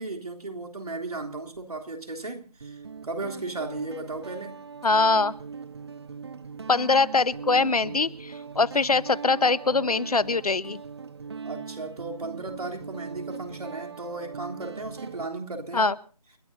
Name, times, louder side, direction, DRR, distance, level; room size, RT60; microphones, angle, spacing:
voice 1, 0.0-4.6 11.4-16.0, right 2 dB, 70° right, 3.6 m, -35 dB
Guitar, 1.3-1.6 2.6-15.3, right 5 dB, 45° right, 0.8 m, -40 dB
voice 2, 4.8-5.3 6.7-10.8 15.7-15.9, left 4 dB, 70° left, 1.0 m, -23 dB
29.5 x 12.0 x 2.8 m
figure-of-eight pair, 160°, 20 cm